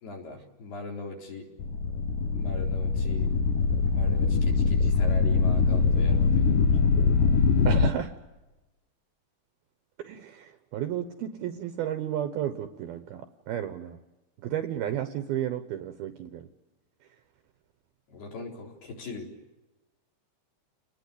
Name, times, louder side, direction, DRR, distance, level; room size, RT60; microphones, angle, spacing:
voice 1, 0.0-1.5 2.3-3.3 3.9-6.8 18.1-19.3, left 3 dB, 55° left, 1 dB, 5.8 m, -40 dB
sound 1, 1.6-7.9, left 5 dB, 75° left, 2.0 m, -23 dB
voice 2, 7.7-8.1 10.0-14.0 14.4-16.5, right 10 dB, 70° right, 10 dB, 2.5 m, -32 dB
29.5 x 20.5 x 8.4 m, 1.1 s
omnidirectional pair, 5.4 m